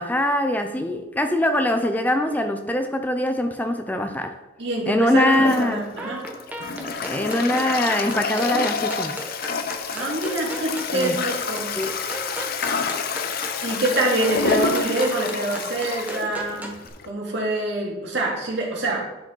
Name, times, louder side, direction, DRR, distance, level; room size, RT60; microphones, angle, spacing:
voice 1, 0.0-4.3 4.9-5.8 7.0-9.2 10.9-11.2 11.8-12.0, left 1 dB, 10° left, 7 dB, 0.4 m, -23 dB
voice 2, 4.6-6.3 9.9-11.7 13.6-16.7 17.1-19.0, right 1 dB, 65° right, -2 dB, 2.1 m, -25 dB
sound 1, 5.2-16.9, right 1 dB, 10° right, 0.9 m, -36 dB
Toilet flush, 5.3-17.1, left 5 dB, 55° left, 0.6 m, -28 dB
10.5 x 4.9 x 3.9 m, 1.0 s
head